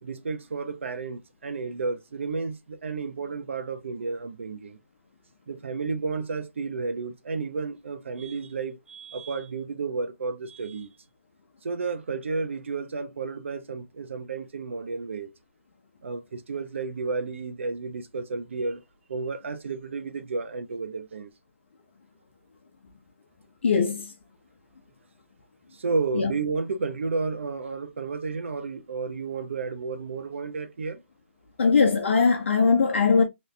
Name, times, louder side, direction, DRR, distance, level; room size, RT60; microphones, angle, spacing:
voice 1, 0.0-4.8 5.5-10.9 11.6-15.3 16.0-18.8 19.1-21.3 25.7-31.0, right 4 dB, 65° right, 0.8 m, -32 dB
voice 2, 23.6-24.1 26.1-26.3 31.6-33.2, left 5 dB, 60° left, 0.8 m, -20 dB
3.2 x 3.2 x 2.6 m
hypercardioid pair, 170°, 7 cm